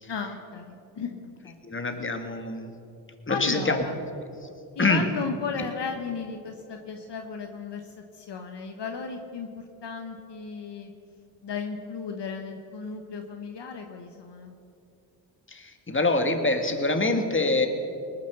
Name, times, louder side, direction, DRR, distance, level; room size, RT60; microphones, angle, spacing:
voice 1, 0.1-1.6 3.3-4.0 4.7-10.9 11.4-14.5, left 5 dB, 60° left, 5 dB, 1.3 m, -35 dB
voice 2, 1.6-2.7 3.3-3.8 4.8-5.1 15.5-17.7, left 2 dB, 25° left, 6 dB, 1.9 m, -25 dB
19.5 x 7.6 x 6.9 m, 2.6 s
supercardioid pair, 45°, 48 cm